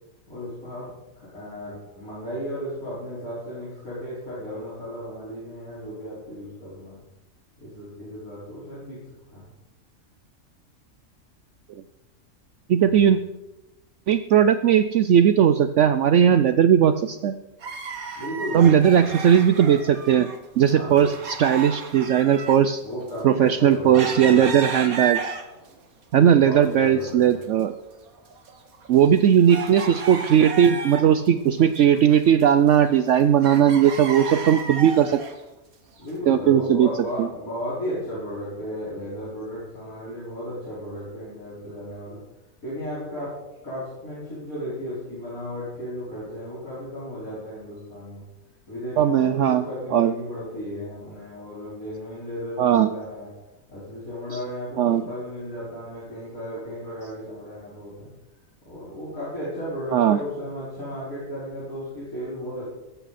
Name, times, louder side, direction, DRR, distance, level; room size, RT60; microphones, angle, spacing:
voice 1, 0.3-7.0 7.6-9.0 9.3-9.5 12.9-13.2 18.1-19.0 20.7-21.1 22.8-24.4 26.2-27.4 36.0-42.2 42.6-43.4 43.6-48.2 48.7-53.3 53.7-58.1 58.7-62.6, equal, 85° left, -10 dB, 5.5 m, -34 dB
voice 2, 12.7-13.2 14.1-17.3 18.5-20.3 20.6-22.8 23.2-25.3 26.1-27.7 28.9-35.2 36.3-36.9 37.2-37.3 49.0-49.6 49.9-50.1 52.6-52.9 54.8-55.0 59.9-60.2, right 9 dB, 65° right, 11 dB, 0.9 m, -18 dB
sound 1, 17.6-20.4 20.6-25.7 26.2-27.1 27.4-27.5 28.1-31.3 31.6-33.2 33.4-35.4 36.0-36.1, right 5 dB, 80° right, 2.0 m, -33 dB
17.0 x 14.0 x 4.2 m, 0.98 s
omnidirectional pair, 1.5 m